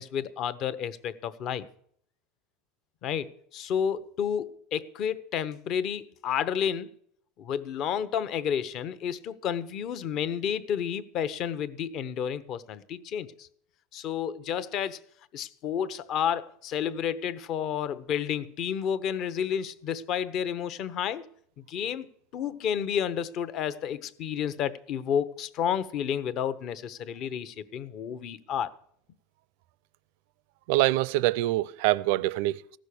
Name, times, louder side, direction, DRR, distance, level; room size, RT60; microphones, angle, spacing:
voice 1, 0.0-1.7 3.0-6.9 7.4-13.5 13.9-15.0 15.3-21.2 21.7-22.1 22.3-28.7, left 8 dB, 40° left, 0.8 m, -31 dB
voice 2, 30.7-32.8, right 17 dB, 65° right, 0.4 m, -25 dB
15.5 x 6.3 x 8.4 m
supercardioid pair, 150°, 0 cm